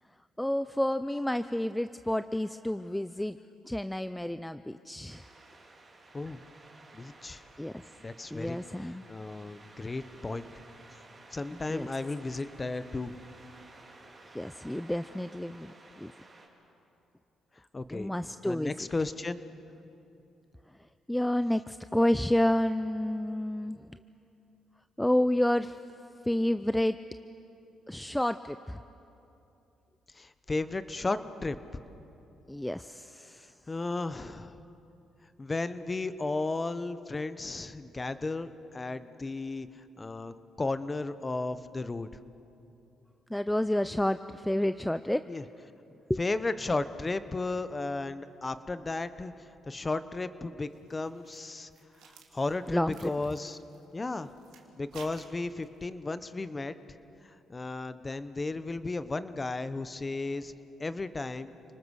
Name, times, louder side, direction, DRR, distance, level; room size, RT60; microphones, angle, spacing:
voice 1, 0.4-3.4 3.7-5.2 7.6-7.8 8.3-9.0 11.5-11.9 14.3-15.7 16.0-16.1 17.9-18.9 21.1-23.8 25.0-25.8 26.2-27.0 27.9-28.8 32.5-33.4 43.3-45.2 46.1-46.2 52.7-53.1, left 1 dB, 5° left, 11 dB, 0.5 m, -29 dB
sound 1, 5.1-16.5, right 2 dB, 30° right, 3.7 m, -54 dB
voice 2, 6.9-7.4 8.0-10.5 11.3-13.2 17.7-18.1 18.4-19.4 30.1-31.6 33.3-34.6 35.4-42.1 45.3-45.4 46.2-49.3 49.7-51.7 52.0-53.6 53.9-54.3 54.8-56.7 57.5-60.5 60.8-61.5, left 3 dB, 25° left, 12 dB, 1.0 m, -34 dB
sound 2, 50.7-55.8, right 6 dB, 90° right, 2.3 m, -56 dB
29.5 x 20.5 x 6.4 m, 2.8 s
cardioid pair, 90°, 0 cm